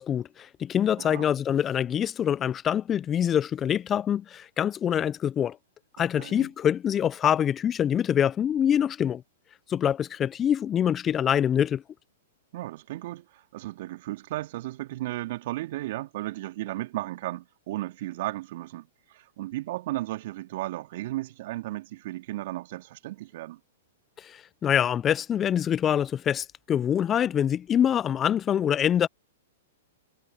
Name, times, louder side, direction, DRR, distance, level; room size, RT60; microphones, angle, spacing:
voice 1, 0.0-5.6 6.0-9.2 9.7-11.8 24.2-29.1, left 9 dB, 25° left, 0.7 m, -25 dB
voice 2, 1.0-1.3 6.0-6.5 12.5-23.6, right 16 dB, 55° right, 2.7 m, -35 dB
hypercardioid pair, 110°, 0 cm